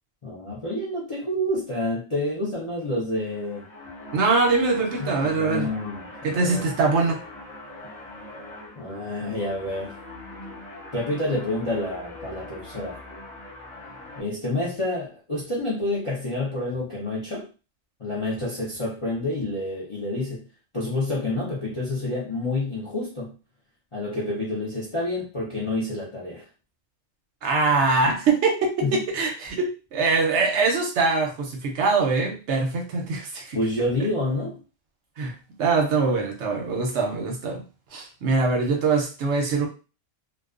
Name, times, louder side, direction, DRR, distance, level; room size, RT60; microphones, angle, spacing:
voice 1, 0.2-3.6 5.0-6.7 8.8-9.9 10.9-13.0 14.2-17.4 18.0-20.5 20.7-23.3 23.9-26.4 28.8-29.0 33.5-34.6, left 1 dB, 40° left, -6 dB, 0.4 m, -28 dB
sound 1, 3.1-14.2, left 2 dB, 5° left, 1.2 m, -42 dB
voice 2, 4.1-5.7 6.2-7.2 27.4-33.6 35.2-37.6 37.9-39.7, right 4 dB, 65° right, 2 dB, 0.8 m, -23 dB
2.3 x 2.3 x 2.3 m, 0.33 s
omnidirectional pair, 1.4 m